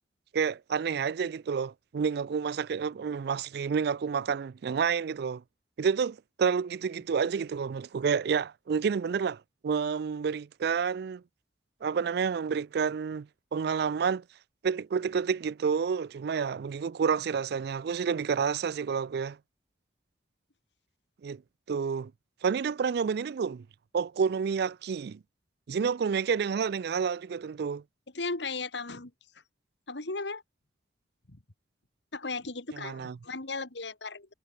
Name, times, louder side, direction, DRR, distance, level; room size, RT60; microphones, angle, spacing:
voice 1, 0.3-5.4 5.8-11.2 11.8-14.2 14.6-19.4 21.2-21.4 21.7-22.1 22.4-23.6 23.9-25.2 25.7-27.8 32.7-33.2, right 6 dB, 60° right, 0.4 m, -29 dB
voice 2, 28.1-29.1 29.9-30.4 31.3-31.4 32.1-34.3, left 3 dB, 70° left, 2.1 m, -36 dB
head